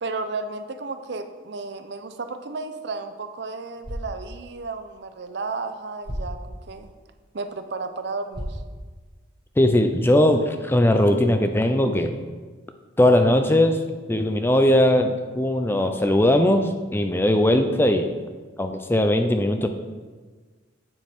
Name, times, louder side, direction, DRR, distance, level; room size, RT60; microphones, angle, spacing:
voice 1, 0.0-6.9 7.3-8.6, right 3 dB, 60° right, 9 dB, 0.6 m, -33 dB
sound 1, 3.6-9.7, equal, 25° right, 1.6 m, -39 dB
voice 2, 9.6-12.1 13.0-13.8 14.1-18.1 18.6-19.7, left 1 dB, 10° left, 6 dB, 0.4 m, -19 dB
9.1 x 7.4 x 3.6 m, 1.4 s
head